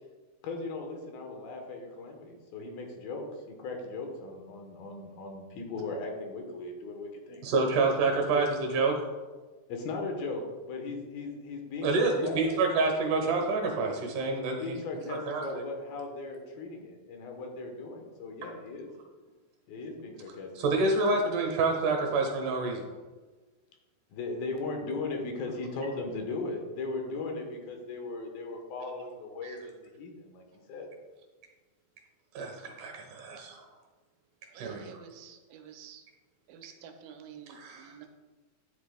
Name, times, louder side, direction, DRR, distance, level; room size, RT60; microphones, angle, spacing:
voice 1, 0.4-7.4 8.0-8.1 8.3-8.5 9.7-12.6 14.4-18.9 19.7-20.5 24.1-30.9, left 3 dB, 80° left, 2 dB, 2.9 m, -38 dB
voice 2, 7.4-8.9 11.8-14.6 15.1-15.6 20.6-22.9 29.4-29.6 32.3-33.6 34.6-34.8 37.5-38.1, right 3 dB, 65° right, 2 dB, 2.4 m, -28 dB
voice 3, 34.5-36.1 36.5-38.1, right 7 dB, 85° right, 6 dB, 2.4 m, -49 dB
10.0 x 8.3 x 2.2 m, 1.3 s
omnidirectional pair, 4.2 m